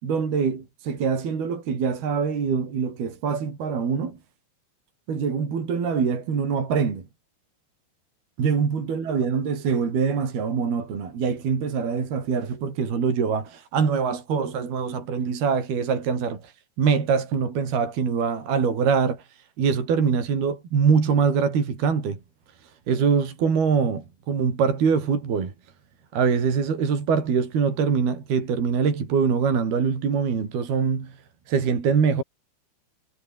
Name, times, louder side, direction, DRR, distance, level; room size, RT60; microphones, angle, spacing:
voice 1, 0.0-4.2 5.1-7.0 8.4-16.5 16.8-19.2 19.6-22.2 22.9-25.5 26.1-31.1 31.5-32.2, right 6 dB, 60° right, 6.5 m, -24 dB
omnidirectional pair, 5.2 m